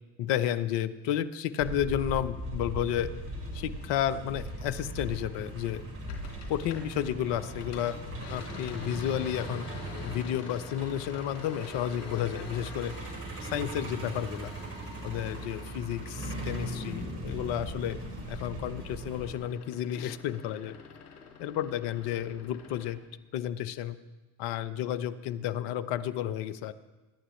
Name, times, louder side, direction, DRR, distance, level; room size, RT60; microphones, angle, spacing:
voice 1, 0.2-3.1 3.5-5.8 6.5-8.0 8.3-9.7 10.0-12.9 13.4-14.5 15.0-18.0 18.3-20.8 21.4-23.0 23.3-24.0 24.4-26.7, left 11 dB, 65° left, 14 dB, 1.0 m, -32 dB
Truck, 1.6-19.4, right 1 dB, 30° right, 5.2 m, -39 dB
sound 1, 6.1-7.1 7.4-17.8 18.1-23.0, left 6 dB, 90° left, 3.3 m, -48 dB
26.5 x 11.0 x 3.3 m, 1.2 s
hypercardioid pair, 75°, 46 cm